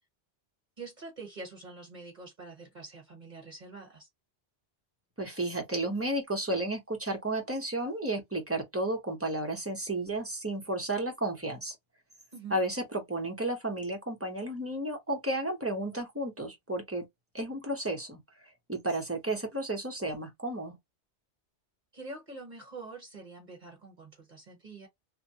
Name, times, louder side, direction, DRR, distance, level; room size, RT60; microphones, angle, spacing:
voice 1, 0.8-4.1 12.3-12.6 21.9-24.9, right 3 dB, 45° right, 1.1 m, -45 dB
voice 2, 5.2-11.7 12.5-12.8 13.1-17.0 17.3-20.8, right 1 dB, 15° right, 0.7 m, -33 dB
3.1 x 2.1 x 2.7 m
omnidirectional pair, 1.2 m